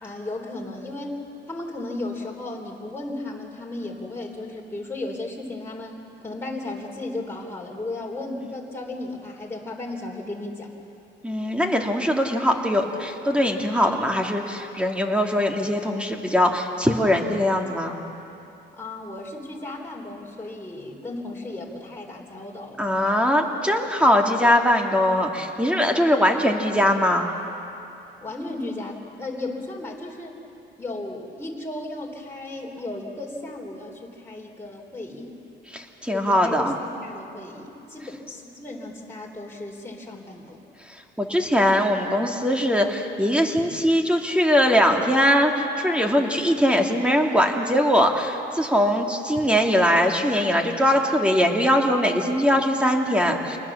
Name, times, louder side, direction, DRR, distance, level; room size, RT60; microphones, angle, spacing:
voice 1, 0.0-6.0 6.2-10.7 18.7-22.8 28.2-30.4 30.8-35.4 36.1-40.6 41.3-41.4, left 2 dB, 10° left, -2 dB, 3.4 m, -35 dB
voice 2, 11.2-18.0 22.8-27.3 35.7-36.8 41.2-53.6, equal, 5° right, 2 dB, 2.5 m, -21 dB
27.5 x 20.0 x 7.3 m, 2.8 s
cardioid pair, 90°, 20 cm